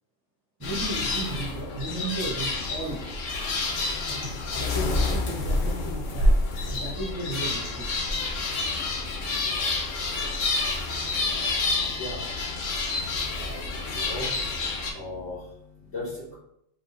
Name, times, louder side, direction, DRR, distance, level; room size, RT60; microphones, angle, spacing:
sound 1, 0.6-14.9, left 2 dB, 85° left, 1.2 m, -28 dB
voice 1, 0.6-3.0 4.1-6.3 6.7-7.9, right 1 dB, 15° right, -9 dB, 1.0 m, -35 dB
voice 2, 11.3-16.3, left 2 dB, 65° left, -9 dB, 2.0 m, -40 dB
3.6 x 2.6 x 4.1 m, 0.76 s
omnidirectional pair, 1.3 m